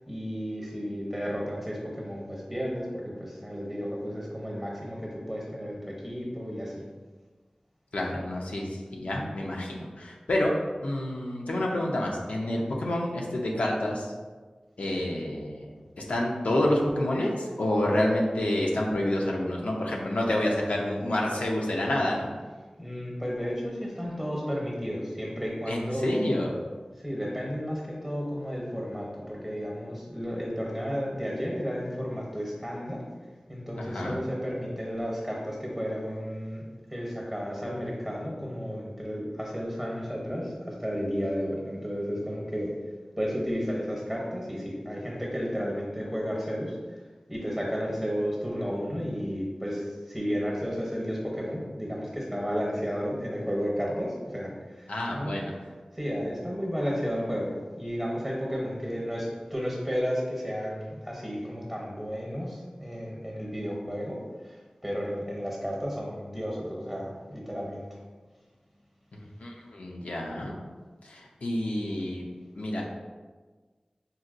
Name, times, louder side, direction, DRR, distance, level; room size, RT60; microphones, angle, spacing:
voice 1, 0.1-6.9 22.8-26.4 27.0-33.1 33.5-42.7 43.2-46.8 47.3-55.3 55.9-68.0, equal, 10° right, -2 dB, 0.8 m, -33 dB
voice 2, 7.9-10.5 10.8-14.1 14.8-15.7 16.1-22.3 25.7-26.5 33.8-34.2 54.9-55.5 69.1-70.5 71.0-72.2 72.6-72.9, left 1 dB, 90° left, -2 dB, 0.4 m, -28 dB
3.9 x 2.2 x 2.5 m, 1.4 s
wide cardioid pair, 40°, 2 cm